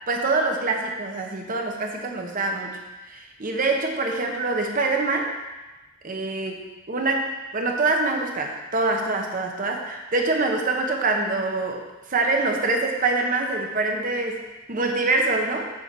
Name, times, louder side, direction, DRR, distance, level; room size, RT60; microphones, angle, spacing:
voice 1, 0.1-5.3 6.0-6.6 6.9-11.8 12.1-14.4 14.7-15.7, right 3 dB, 45° right, 2 dB, 1.0 m, -25 dB
7.0 x 4.5 x 6.9 m, 1.1 s
head